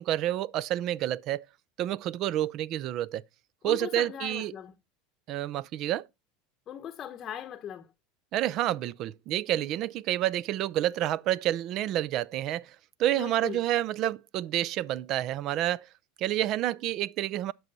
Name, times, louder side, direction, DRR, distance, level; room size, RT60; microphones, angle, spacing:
voice 1, 0.0-1.4 1.8-3.2 3.6-4.5 5.3-6.1 8.3-12.7 13.0-15.9 16.2-17.5, right 13 dB, 50° right, 0.4 m, -29 dB
voice 2, 3.6-4.7 6.7-7.9 13.1-13.6, left 10 dB, 35° left, 0.8 m, -39 dB
9.4 x 6.2 x 5.3 m
supercardioid pair, 115°, 0 cm